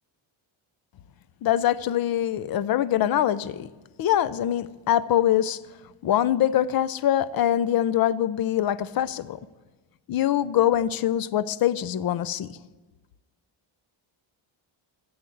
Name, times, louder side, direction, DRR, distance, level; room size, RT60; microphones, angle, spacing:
voice 1, 1.4-3.7 4.0-5.6 6.0-9.4 10.1-12.6, left 11 dB, 50° left, 18 dB, 0.5 m, -23 dB
13.5 x 7.9 x 7.7 m, 1.2 s
cardioid pair, 165°, 48 cm